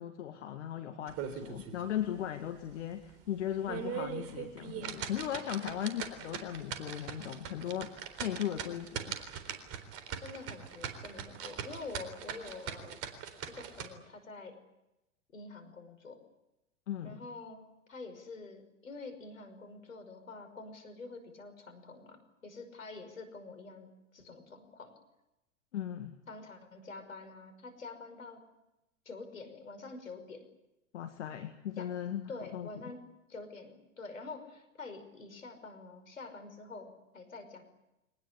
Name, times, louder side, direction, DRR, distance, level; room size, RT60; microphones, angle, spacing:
voice 1, 0.0-9.1 16.9-17.2 25.7-26.2 30.9-32.2 32.5-32.7, left 10 dB, 60° left, 8 dB, 2.1 m, -37 dB
sound 1, 1.1-1.8 2.2-2.3 2.8-2.9 3.5-13.9, right 8 dB, 35° right, 4.0 m, -41 dB
voice 2, 10.2-13.0 13.5-14.6 15.3-16.2 17.0-24.9 26.3-28.4 29.1-30.5 31.8-31.9 32.3-33.0 33.3-37.6, left 3 dB, 80° left, 9 dB, 5.7 m, -47 dB
24.0 x 19.5 x 9.9 m, 0.94 s
figure-of-eight pair, 95°, 39 cm